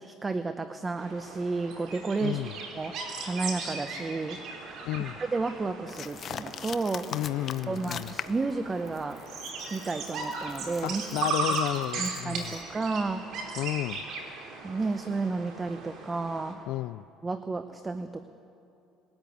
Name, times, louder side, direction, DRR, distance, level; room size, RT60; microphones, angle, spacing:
voice 1, 0.0-2.5 2.7-4.4 5.3-7.1 7.7-9.2 9.7-11.2 12.0-13.2 14.6-16.6 17.2-18.2, right 3 dB, 20° right, 0.8 m, -32 dB
sound 1, 1.0-16.5, right 3 dB, 60° right, 4.2 m, -37 dB
voice 2, 2.2-2.6 4.8-5.2 7.1-8.1 10.8-12.6 13.6-14.0 16.7-17.0, left 16 dB, 70° left, 0.4 m, -32 dB
sound 2, 5.9-8.5 8.9-12.6, left 8 dB, 40° left, 0.7 m, -41 dB
21.0 x 13.5 x 9.4 m
cardioid pair, 120°, 0 cm